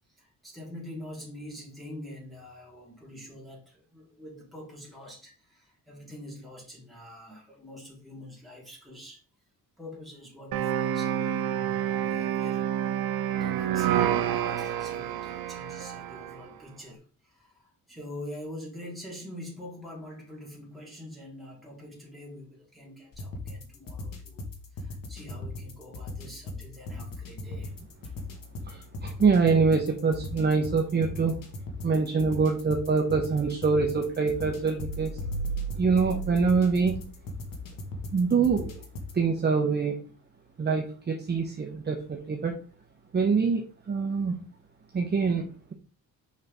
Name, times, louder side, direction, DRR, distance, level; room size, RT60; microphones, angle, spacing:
voice 1, 0.1-9.2 9.8-12.7 13.4-27.7 28.0-28.1, left 1 dB, ahead, -4 dB, 3.5 m, -45 dB
sound 1, 10.5-16.5, right 10 dB, 80° right, 0.7 m, -28 dB
sound 2, 23.1-39.2, left 2 dB, 65° left, 1.6 m, -40 dB
voice 2, 28.7-31.4 31.8-35.2 35.7-37.0 38.1-38.8 39.1-40.0 40.6-42.5 43.1-44.4 44.9-45.7, right 5 dB, 30° right, 2 dB, 0.9 m, -25 dB
sound 3, 34.8-37.7, right 3 dB, 45° left, 0.9 m, -36 dB
6.4 x 5.5 x 3.6 m, 0.38 s
cardioid pair, 130°, 35 cm